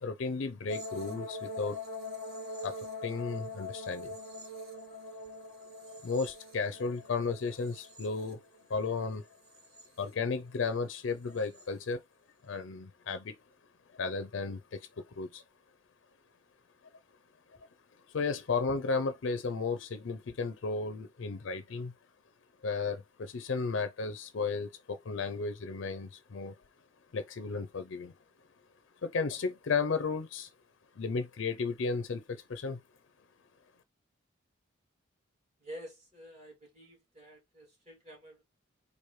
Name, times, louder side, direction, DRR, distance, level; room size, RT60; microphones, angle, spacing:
voice 1, 0.0-1.8 2.6-4.1 6.0-8.4 8.7-9.3 10.0-12.0 12.4-13.4 13.9-15.4 17.5-17.6 18.1-21.9 22.6-26.6 27.1-28.1 29.0-30.5 31.0-32.8, left 4 dB, 70° left, 0.5 m, -34 dB
sound 1, 0.7-8.9 9.3-10.1 11.3-11.7, left 2 dB, 55° right, 1.2 m, -43 dB
voice 2, 35.6-38.4, equal, 35° right, 2.3 m, -49 dB
4.6 x 2.6 x 3.1 m
head